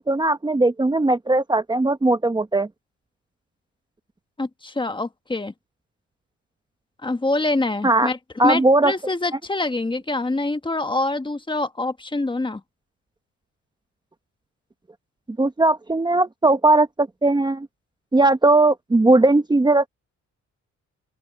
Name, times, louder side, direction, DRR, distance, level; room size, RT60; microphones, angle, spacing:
voice 1, 0.0-2.7 7.8-8.1 8.4-8.9 15.4-17.7 18.1-19.8, right 2 dB, 15° right, 1.0 m, -18 dB
voice 2, 4.4-5.5 7.0-8.2 8.4-12.6, left 2 dB, 15° left, 1.4 m, -25 dB
open air
cardioid pair, 90°, 30 cm